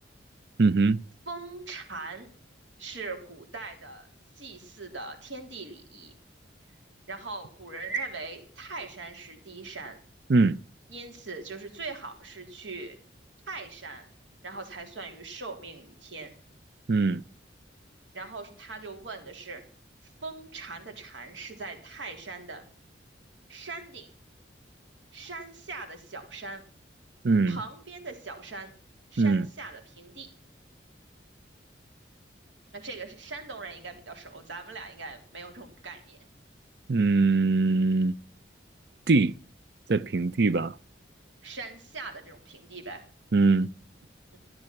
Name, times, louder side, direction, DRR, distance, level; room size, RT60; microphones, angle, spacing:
voice 1, 0.6-1.0 10.3-10.6 16.9-17.2 27.2-27.6 29.2-29.5 36.9-38.1 39.1-39.4 39.9-40.8 43.3-43.7, right 3 dB, 60° right, 0.6 m, -22 dB
voice 2, 1.3-2.3 2.8-4.1 4.3-6.1 7.1-10.0 10.9-13.0 13.5-14.1 14.4-16.3 18.1-19.6 20.0-22.6 23.5-24.1 25.1-26.6 27.5-28.7 29.1-30.3 32.7-36.2 41.4-43.0 44.3-44.4, right 3 dB, 85° right, 3.4 m, -40 dB
14.0 x 10.5 x 5.9 m
head